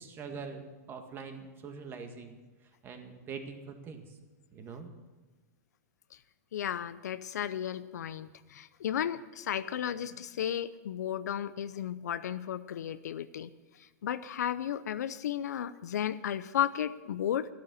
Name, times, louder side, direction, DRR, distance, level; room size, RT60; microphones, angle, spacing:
voice 1, 0.0-2.4 2.8-4.2 4.5-4.9, right 5 dB, 25° right, 5 dB, 1.9 m, -43 dB
voice 2, 6.5-13.5 13.8-17.5, left 10 dB, 85° left, 13 dB, 0.6 m, -34 dB
14.0 x 11.5 x 7.1 m, 1.3 s
hypercardioid pair, 140°, 9 cm